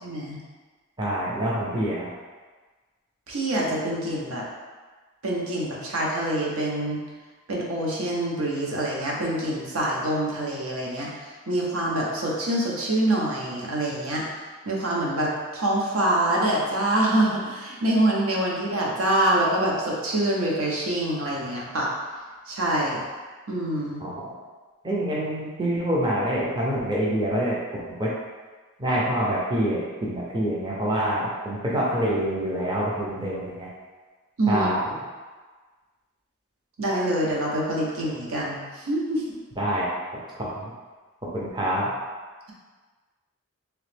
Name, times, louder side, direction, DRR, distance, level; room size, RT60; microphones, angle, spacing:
voice 1, 0.0-0.4 3.3-4.4 5.2-7.0 7.5-11.1 11.5-14.2 14.7-21.9 22.5-23.0 23.5-24.0 34.4-34.7 36.8-39.2, right 1 dB, 70° right, -3 dB, 0.8 m, -25 dB
voice 2, 1.0-2.1 24.0-24.2 24.8-27.6 27.9-28.1 28.8-33.7 34.5-34.8 39.6-39.9 40.3-40.7 41.3-41.9, right 1 dB, 20° right, -6 dB, 0.5 m, -26 dB
3.0 x 2.9 x 3.3 m, 1.4 s
head